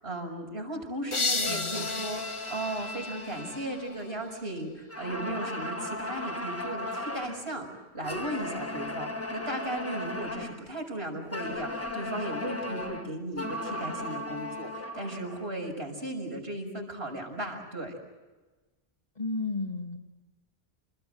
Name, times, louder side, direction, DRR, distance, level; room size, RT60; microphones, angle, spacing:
voice 1, 0.0-17.9, right 1 dB, 85° right, 1 dB, 6.5 m, -36 dB
sound 1, 1.1-3.9, left 3 dB, 30° left, 1.4 m, -33 dB
sound 2, 1.4-4.5 4.9-7.5 8.0-10.7 11.3-15.5, left 1 dB, 15° left, 1.4 m, -37 dB
voice 2, 1.5-1.9 19.2-20.0, left 3 dB, 45° left, 2 dB, 2.6 m, -33 dB
29.5 x 21.0 x 8.0 m, 1.2 s
omnidirectional pair, 1.0 m